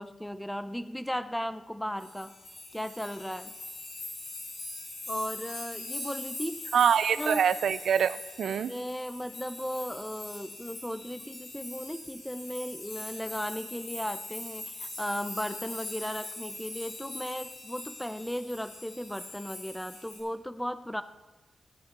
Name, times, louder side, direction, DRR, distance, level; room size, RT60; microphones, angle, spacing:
voice 1, 0.0-2.3 2.7-3.6 5.1-6.7 7.1-7.4 8.6-21.0, equal, 5° left, 12 dB, 0.5 m, -36 dB
sound 1, 2.0-20.2, left 2 dB, 85° left, 3.8 m, -42 dB
voice 2, 6.7-8.7, right 8 dB, 85° right, 16 dB, 0.4 m, -25 dB
16.0 x 9.6 x 3.7 m, 1.2 s
wide cardioid pair, 130°, 0 cm